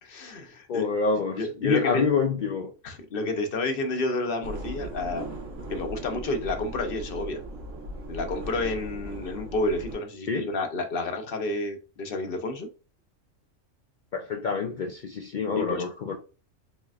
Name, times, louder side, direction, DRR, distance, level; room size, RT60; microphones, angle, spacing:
voice 1, 0.0-0.9 1.3-2.1 2.8-5.4 5.7-7.4 8.1-12.7 15.5-15.9, left 2 dB, 50° left, 0.8 m, -30 dB
voice 2, 0.7-2.7 10.3-10.5 14.1-16.2, left 5 dB, 75° left, 0.4 m, -27 dB
sound 1, 4.4-9.9, right 1 dB, 80° right, 2.2 m, -38 dB
4.1 x 3.1 x 2.4 m
omnidirectional pair, 1.4 m